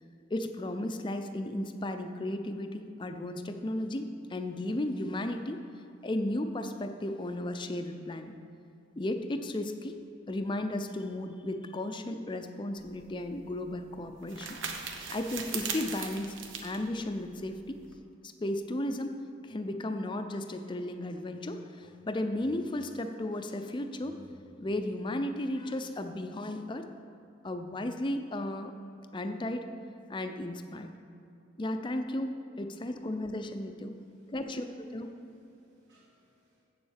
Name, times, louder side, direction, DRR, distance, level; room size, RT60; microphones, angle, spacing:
voice 1, 0.3-5.6 6.0-8.3 9.0-10.0 10.3-14.6 15.1-16.3 16.6-17.8 18.2-19.2 19.4-26.9 27.4-28.7 29.1-29.7 30.1-30.9 31.6-33.9 34.3-35.1, left 1 dB, 25° left, 7 dB, 0.5 m, -34 dB
sound 1, 12.8-18.0, right 5 dB, 85° right, 0.9 m, -40 dB
voice 2, 34.4-35.2 35.5-36.6, equal, 65° right, -4 dB, 1.1 m, -58 dB
7.9 x 7.1 x 6.5 m, 2.7 s
head